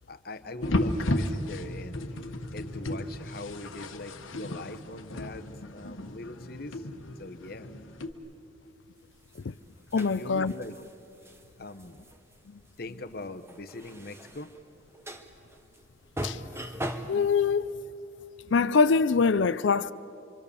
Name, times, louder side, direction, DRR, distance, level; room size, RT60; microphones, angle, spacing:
voice 1, 0.1-2.0 2.5-6.9 7.2-7.7 9.9-10.8 11.6-12.0 12.8-14.5 15.1-15.2, left 2 dB, 50° left, 1.0 m, -41 dB
sound 1, 0.6-8.1, left 1 dB, 90° left, 1.3 m, -34 dB
sound 2, 9.1-17.3, right 1 dB, 15° right, 1.2 m, -40 dB
voice 2, 9.9-10.5 16.2-16.4 17.1-17.7 18.5-19.9, left 5 dB, 70° left, 0.5 m, -23 dB
26.0 x 25.0 x 7.1 m
head